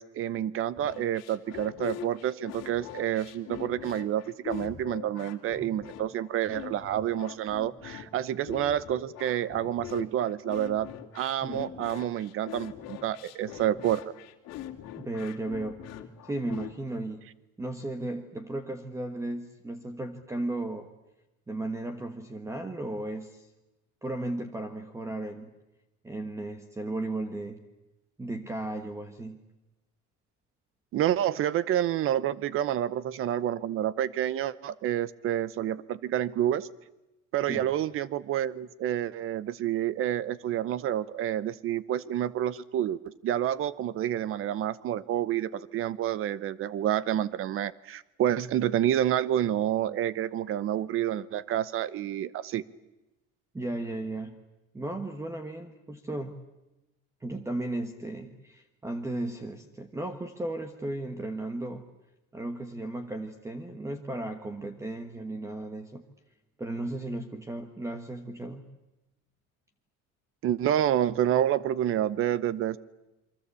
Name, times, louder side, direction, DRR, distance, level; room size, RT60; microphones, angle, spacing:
voice 1, 0.0-10.9 11.1-14.1 30.9-36.7 37.3-52.6 70.4-72.8, right 11 dB, 40° right, 19 dB, 0.9 m, -29 dB
sound 1, 0.8-16.7, left 11 dB, 50° left, 2.6 m, -42 dB
voice 2, 15.0-15.8 16.2-17.2 17.6-20.9 21.5-23.5 24.0-25.5 26.0-27.6 28.2-29.4 37.5-37.7 53.5-54.4 54.7-56.4 57.2-61.8 62.3-66.0 66.6-68.6, right 2 dB, 10° right, 8 dB, 1.3 m, -35 dB
28.0 x 24.0 x 8.3 m, 0.99 s
cardioid pair, 170°, 32 cm